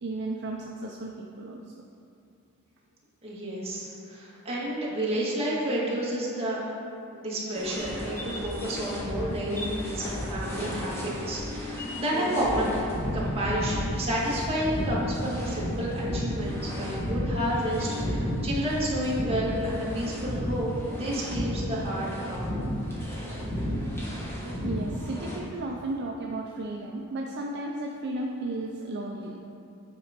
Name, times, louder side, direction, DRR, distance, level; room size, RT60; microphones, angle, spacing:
voice 1, 0.0-1.6 23.0-23.1 24.6-29.4, right 2 dB, 50° right, 0 dB, 0.5 m, -34 dB
voice 2, 3.2-6.6 7.1-12.7 13.1-22.6, equal, 25° right, -7 dB, 1.8 m, -30 dB
sound 1, 7.5-25.4, equal, 10° left, 1.4 m, -32 dB
8.8 x 4.1 x 5.1 m, 2.6 s
head